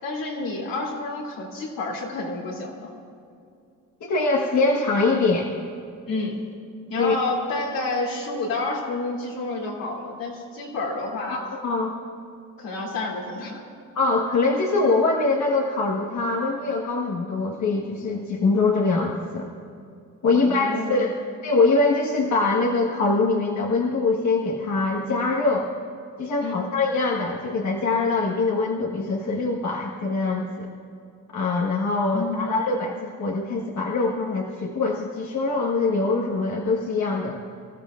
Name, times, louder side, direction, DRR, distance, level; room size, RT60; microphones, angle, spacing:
voice 1, 0.0-2.9 6.1-6.4 6.9-11.5 12.6-13.6 20.3-21.1 26.4-26.5 32.1-32.4, left 2 dB, 80° left, -3 dB, 3.1 m, -29 dB
voice 2, 4.0-5.5 6.9-7.2 11.3-11.9 13.9-19.5 20.2-21.2 21.4-25.7 26.2-30.7 31.3-37.4, left 3 dB, 55° left, -2 dB, 1.5 m, -23 dB
25.5 x 14.0 x 2.5 m, 2.4 s
cardioid pair, 75°, 33 cm